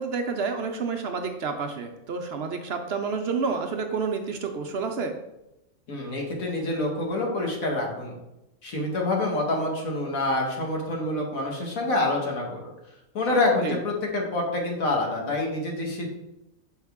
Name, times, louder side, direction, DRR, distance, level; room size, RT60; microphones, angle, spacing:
voice 1, 0.0-5.2 13.6-13.8, right 5 dB, 60° right, 5 dB, 0.8 m, -29 dB
voice 2, 5.9-8.2 8.6-12.7 13.1-16.1, left 2 dB, 85° left, -1 dB, 1.9 m, -27 dB
6.4 x 5.2 x 3.5 m, 0.90 s
omnidirectional pair, 1.4 m